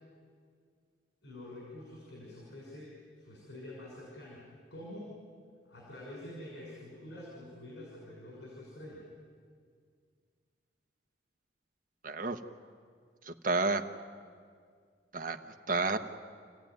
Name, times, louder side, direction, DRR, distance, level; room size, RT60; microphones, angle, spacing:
voice 1, 1.2-5.1 5.6-9.1, left 1 dB, 75° left, -3 dB, 6.0 m, -47 dB
voice 2, 12.0-12.4 13.3-13.8 15.1-15.4 15.7-16.0, right 3 dB, 50° right, 7 dB, 1.1 m, -30 dB
29.0 x 15.0 x 9.4 m, 2.1 s
head